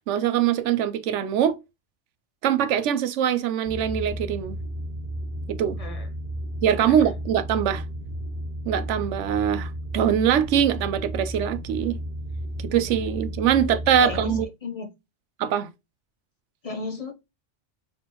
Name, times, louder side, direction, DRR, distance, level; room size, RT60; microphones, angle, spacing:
voice 1, 0.1-1.6 2.4-4.6 5.5-5.8 6.6-7.8 8.7-12.0 12.6-14.5 15.4-15.7, right 9 dB, 80° right, 0.9 m, -23 dB
sound 1, 3.6-14.4, equal, 45° right, 1.6 m, -33 dB
voice 2, 13.6-14.9 16.6-17.1, left 3 dB, 40° left, 0.5 m, -35 dB
4.3 x 3.4 x 2.9 m
omnidirectional pair, 1.2 m